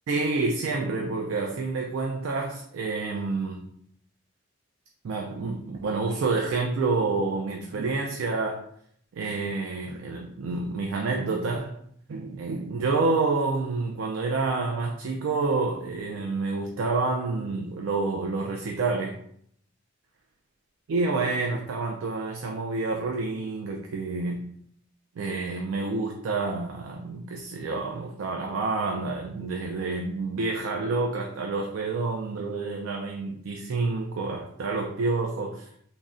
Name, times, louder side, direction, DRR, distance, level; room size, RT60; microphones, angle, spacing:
voice 1, 0.1-3.7 5.0-8.7 9.1-11.8 12.1-19.1 20.9-24.4 25.2-35.7, right 3 dB, 85° right, 1 dB, 0.3 m, -28 dB
3.7 x 2.1 x 2.4 m, 0.67 s
head